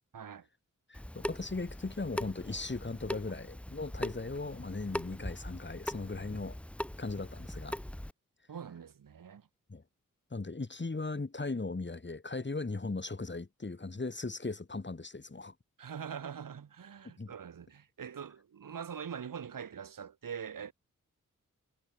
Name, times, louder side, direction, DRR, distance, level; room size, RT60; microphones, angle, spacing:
voice 1, 0.1-0.5 8.5-9.5 15.8-20.7, right 7 dB, 80° right, 2.3 m, -43 dB
voice 2, 0.9-6.6 7.0-7.8 9.7-9.8 10.3-15.5 17.0-17.3, left 3 dB, 35° left, 2.8 m, -38 dB
Water tap faucet / Sink (filling or washing) / Drip, 0.9-8.1, left 1 dB, 5° left, 0.6 m, -41 dB
cardioid pair, 40°, 33 cm